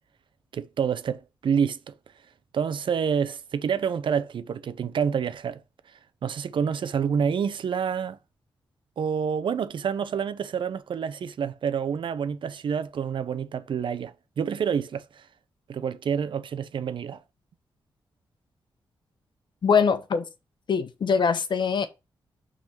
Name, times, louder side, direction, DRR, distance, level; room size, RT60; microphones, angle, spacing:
voice 1, 0.5-1.9 2.5-5.6 6.2-8.2 9.0-15.2 15.7-17.2, right 7 dB, 70° right, 0.9 m, -28 dB
voice 2, 19.6-20.2 20.7-21.9, left 6 dB, 65° left, 1.2 m, -22 dB
6.0 x 4.1 x 5.9 m
cardioid pair, 75°, 9 cm